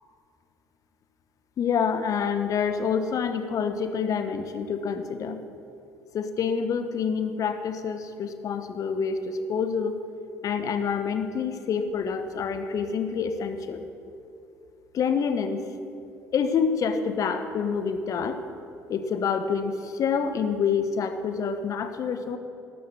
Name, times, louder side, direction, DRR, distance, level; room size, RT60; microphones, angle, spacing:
voice 1, 1.6-5.4 6.1-10.0 10.4-13.8 14.9-15.6 16.3-18.4 18.9-22.4, left 6 dB, 45° left, 9 dB, 1.1 m, -27 dB
12.5 x 10.5 x 7.0 m, 2.7 s
figure-of-eight pair, 55°, 8 cm